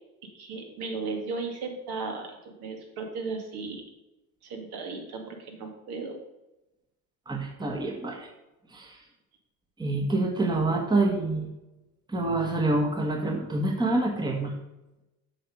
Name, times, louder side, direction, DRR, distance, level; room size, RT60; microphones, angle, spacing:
voice 1, 0.2-3.8 4.4-6.2, right 4 dB, 60° right, 3 dB, 2.3 m, -36 dB
voice 2, 7.3-8.3 8.7-9.0 9.8-11.5 12.1-14.5, right 2 dB, 10° right, 2 dB, 1.4 m, -27 dB
7.7 x 6.0 x 5.3 m, 0.97 s
hypercardioid pair, 80°, 44 cm